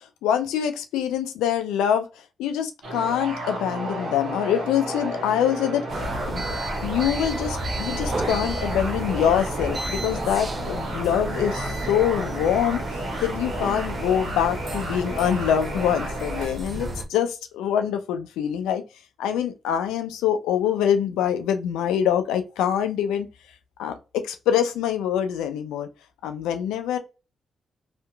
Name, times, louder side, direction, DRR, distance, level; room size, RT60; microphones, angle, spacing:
voice 1, 0.2-2.1 2.4-6.5 6.8-18.8 19.2-23.3 23.8-25.9 26.2-27.0, left 9 dB, 90° left, 0.4 m, -25 dB
sound 1, 2.8-16.5, right 1 dB, 85° right, 1.0 m, -33 dB
sound 2, 5.9-17.0, right 1 dB, 45° right, 0.6 m, -32 dB
2.9 x 2.4 x 2.2 m
supercardioid pair, 55°, 0 cm